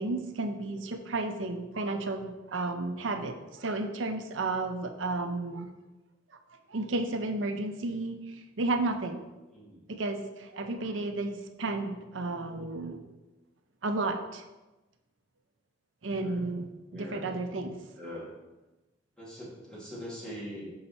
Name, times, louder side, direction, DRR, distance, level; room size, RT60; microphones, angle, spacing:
voice 1, 0.0-5.7 6.7-9.2 9.9-13.0 13.8-14.4 16.0-17.7, right 2 dB, 80° right, 6 dB, 0.7 m, -32 dB
voice 2, 9.5-9.9 16.1-16.4 16.9-17.4 18.0-18.3 19.2-20.7, equal, 5° left, -8 dB, 2.4 m, -42 dB
5.7 x 5.4 x 4.2 m, 1.1 s
head